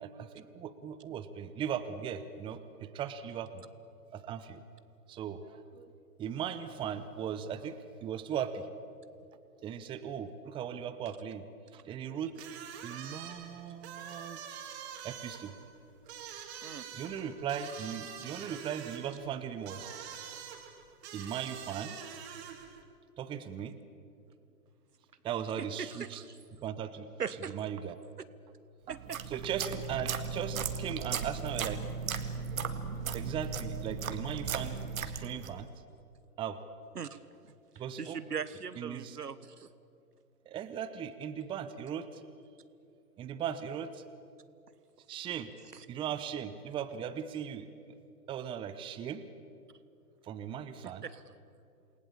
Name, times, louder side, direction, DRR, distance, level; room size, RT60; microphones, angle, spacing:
voice 1, 0.0-3.7 4.1-4.6 5.1-5.9 6.2-8.7 9.6-11.4 11.7-12.3 12.8-14.4 15.0-15.6 16.9-20.4 21.1-22.0 23.2-23.8 25.2-26.2 26.6-27.1 27.5-28.0 28.9-29.0 29.3-31.8 33.1-35.7 36.4-36.6 37.8-38.2 38.8-39.2 40.5-42.2 43.2-44.0 45.1-45.5 45.9-47.7 48.3-49.2 50.2-51.0, right 8 dB, 10° right, 11 dB, 0.8 m, -38 dB
sound 1, 12.3-22.8, right 8 dB, 45° right, 3.5 m, -46 dB
voice 2, 25.6-26.3 27.2-27.5 28.9-29.2 36.9-37.5 38.0-39.7 45.7-45.8 51.0-51.2, right 6 dB, 80° right, 15 dB, 1.4 m, -40 dB
sound 2, 28.9-35.6, right 6 dB, 60° right, 2.0 m, -36 dB
28.0 x 20.0 x 8.7 m, 2.5 s
figure-of-eight pair, 120°, 47 cm